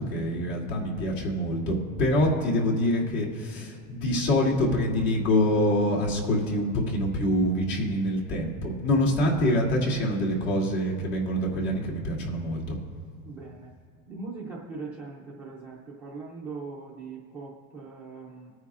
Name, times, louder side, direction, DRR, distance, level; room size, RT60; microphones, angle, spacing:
voice 1, 0.0-12.8, left 1 dB, 60° left, -3 dB, 2.7 m, -25 dB
voice 2, 13.2-13.7 14.1-18.5, right 4 dB, 5° right, -7 dB, 0.3 m, -40 dB
21.5 x 9.4 x 2.4 m, 2.2 s
supercardioid pair, 175°, 41 cm